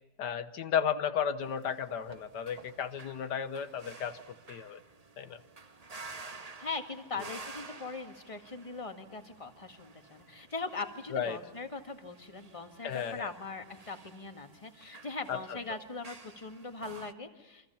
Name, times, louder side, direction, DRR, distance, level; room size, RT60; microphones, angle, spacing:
voice 1, 0.2-4.2 4.5-4.8 5.2-5.4 7.2-7.3 11.1-11.4 12.8-13.3 15.3-15.8, left 8 dB, 80° left, 11 dB, 1.7 m, -34 dB
sound 1, 1.4-17.1, right 3 dB, 25° right, 1.0 m, -52 dB
voice 2, 6.6-17.7, left 3 dB, 20° left, 6 dB, 2.0 m, -41 dB
28.5 x 25.5 x 7.1 m, 1.0 s
omnidirectional pair, 1.8 m